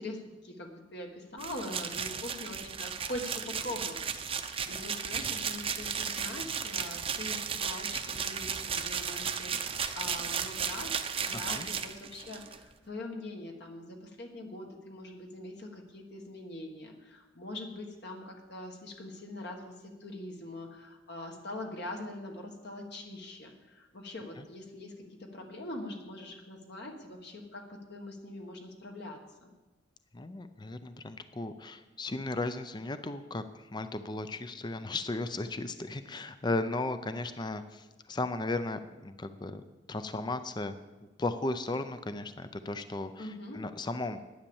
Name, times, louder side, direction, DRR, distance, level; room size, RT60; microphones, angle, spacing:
voice 1, 0.0-11.0 11.3-29.5 43.2-43.6, left 1 dB, 60° left, 1 dB, 1.5 m, -43 dB
sound 1, 1.4-12.6, right 7 dB, 30° right, 0.7 m, -35 dB
voice 2, 11.3-11.7 30.1-33.4 33.7-37.8 38.1-39.6 39.9-40.7 41.2-43.3 43.5-44.2, left 2 dB, 25° left, 10 dB, 0.5 m, -35 dB
10.5 x 9.7 x 7.1 m, 1.1 s
head